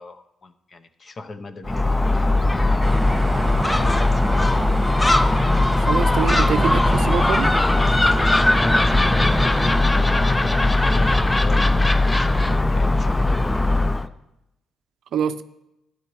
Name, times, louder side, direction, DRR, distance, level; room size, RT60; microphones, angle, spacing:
voice 1, 0.0-3.0 3.3-3.4 3.7-4.7 8.1-13.9, left 3 dB, 40° left, 9 dB, 0.7 m, -36 dB
Gull seagull, 1.6-14.1, left 2 dB, 15° left, 0.4 m, -19 dB
sound 1, 2.8-9.8, right 2 dB, 15° right, 1.3 m, -29 dB
sound 2, 5.0-6.5 7.0-8.3 8.9-10.1 10.6-11.2, left 3 dB, 65° left, 1.3 m, -42 dB
voice 2, 5.8-7.5 15.1-15.4, right 8 dB, 70° right, 12 dB, 0.5 m, -25 dB
13.0 x 9.3 x 3.1 m, 0.89 s
cardioid pair, 90°, 0 cm